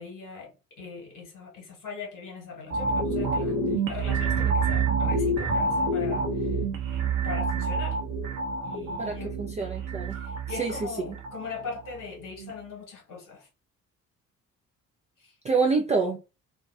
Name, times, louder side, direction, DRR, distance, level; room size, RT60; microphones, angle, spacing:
voice 1, 0.0-6.6 7.2-8.0 8.6-9.3 10.1-13.5 15.2-15.4, left 4 dB, 45° left, 1.2 m, -40 dB
sound 1, 2.7-12.0 12.4-12.5, right 3 dB, 45° right, 0.8 m, -28 dB
voice 2, 9.0-10.2 10.6-10.8 11.1-11.2 15.4-16.2, right 4 dB, 15° right, 0.3 m, -27 dB
2.5 x 2.2 x 2.3 m
figure-of-eight pair, 45°, 44 cm